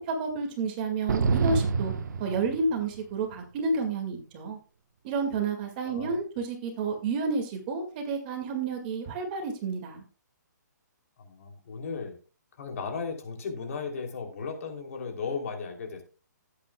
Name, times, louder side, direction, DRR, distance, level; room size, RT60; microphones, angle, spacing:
voice 1, 0.0-1.9 2.2-4.6 5.0-10.0, right 4 dB, 30° right, 4 dB, 2.1 m, -30 dB
sound 1, 1.1-3.0, right 5 dB, 65° right, 1.2 m, -27 dB
voice 2, 5.8-6.2 11.2-12.2 12.6-16.0, left 5 dB, 50° left, 4 dB, 3.1 m, -36 dB
17.5 x 8.4 x 2.3 m, 0.33 s
hypercardioid pair, 160°, 10 cm